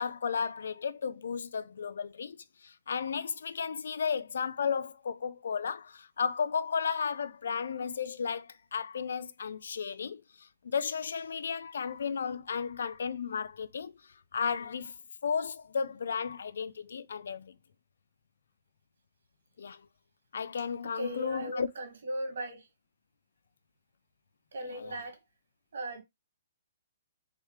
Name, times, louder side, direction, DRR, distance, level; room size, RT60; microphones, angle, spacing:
voice 1, 0.0-14.0 14.3-15.0 15.2-17.6 19.6-19.9 20.3-21.7 24.7-25.0, left 6 dB, 80° left, 0.4 m, -34 dB
voice 2, 20.9-22.7 24.5-25.2 25.7-26.0, right 1 dB, 80° right, 1.7 m, -37 dB
3.6 x 3.3 x 3.1 m
hypercardioid pair, 155°, 0 cm